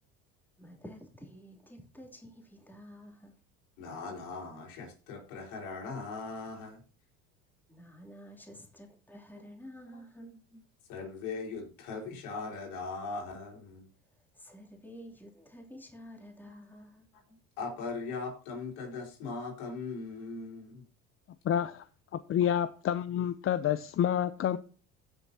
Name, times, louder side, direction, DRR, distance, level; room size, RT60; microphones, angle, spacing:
voice 1, 0.6-3.3 7.7-10.3 14.3-17.1, equal, 5° left, 2.9 m, -50 dB
voice 2, 3.8-6.8 9.3-9.4 9.9-10.6 10.9-13.9 17.3-20.8, left 4 dB, 75° left, 4.6 m, -40 dB
voice 3, 21.4-21.8 22.1-24.6, left 9 dB, 35° left, 0.6 m, -28 dB
16.5 x 6.9 x 2.8 m
supercardioid pair, 85°, 37 cm